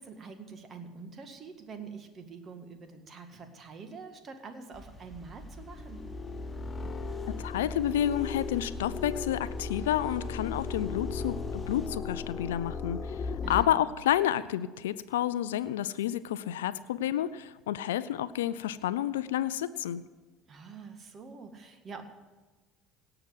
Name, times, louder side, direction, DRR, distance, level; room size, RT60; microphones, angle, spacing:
voice 1, 0.0-6.0 13.4-13.8 20.5-22.0, right 5 dB, 40° right, 7 dB, 1.9 m, -46 dB
sound 1, 4.7-11.9, left 1 dB, 10° left, 2.9 m, -47 dB
sound 2, 5.6-13.6, left 4 dB, 30° left, 0.8 m, -36 dB
voice 2, 7.3-13.2 13.5-20.0, left 11 dB, 80° left, 14 dB, 0.4 m, -30 dB
17.5 x 5.9 x 9.5 m, 1.3 s
hypercardioid pair, 65°, 0 cm